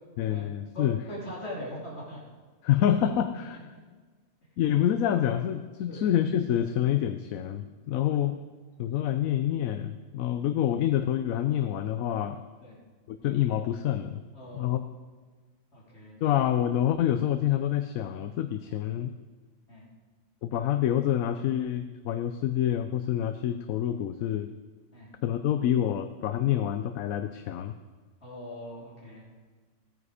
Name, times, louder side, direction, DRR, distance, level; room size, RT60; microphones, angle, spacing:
voice 1, 0.2-1.0 2.6-3.7 4.6-8.4 8.8-12.4 13.1-14.2 14.5-14.8 16.2-19.1 20.4-24.5 25.2-27.7, left 11 dB, 80° left, 9 dB, 1.0 m, -27 dB
voice 2, 0.7-2.2 5.9-6.0 12.6-12.8 14.3-14.7 15.7-16.2 18.6-18.8 19.7-19.8 24.9-25.1 28.2-29.2, left 1 dB, 50° left, -4 dB, 3.2 m, -41 dB
15.5 x 9.4 x 4.9 m, 1.4 s
omnidirectional pair, 1.4 m